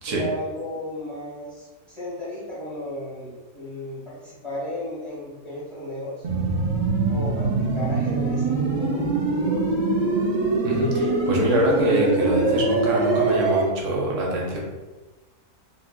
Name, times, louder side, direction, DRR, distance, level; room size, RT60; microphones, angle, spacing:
voice 1, 0.1-6.1 7.1-9.7, left 1 dB, 35° left, -9 dB, 0.4 m, -34 dB
sound 1, 6.2-13.6, right 2 dB, 80° right, 0.4 m, -23 dB
voice 2, 10.6-14.6, right 1 dB, 60° right, -2 dB, 0.9 m, -25 dB
2.7 x 2.4 x 3.5 m, 1.2 s
omnidirectional pair, 1.7 m